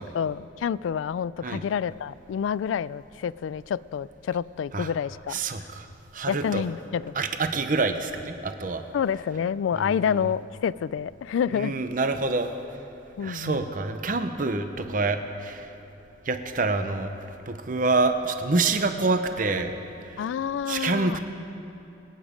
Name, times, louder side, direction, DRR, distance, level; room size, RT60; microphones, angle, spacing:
voice 1, 0.0-5.4 6.3-7.1 8.9-11.7 13.2-13.7 20.2-21.2, left 7 dB, 90° left, 20 dB, 0.3 m, -28 dB
voice 2, 5.3-5.9 6.1-6.6 7.1-8.8 9.7-10.0 11.5-12.5 13.2-15.7 16.3-17.1 17.5-19.8 20.1-20.2 20.7-21.2, right 3 dB, 45° right, 8 dB, 0.7 m, -26 dB
23.0 x 9.1 x 5.1 m, 2.9 s
head